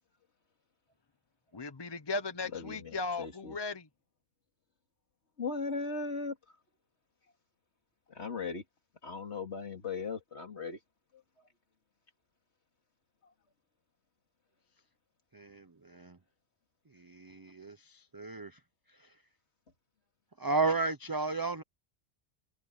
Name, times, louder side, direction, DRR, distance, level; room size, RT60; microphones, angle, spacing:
voice 1, 1.5-3.9, left 3 dB, 25° left, 0.7 m, -37 dB
voice 2, 2.5-3.6 5.4-6.6 8.1-8.6 9.0-10.8 11.1-11.5 13.2-13.3, left 4 dB, 80° left, 2.7 m, -38 dB
voice 3, 17.2-17.7 18.1-18.5 20.4-21.6, right 3 dB, 25° right, 0.6 m, -32 dB
omnidirectional pair, 1.1 m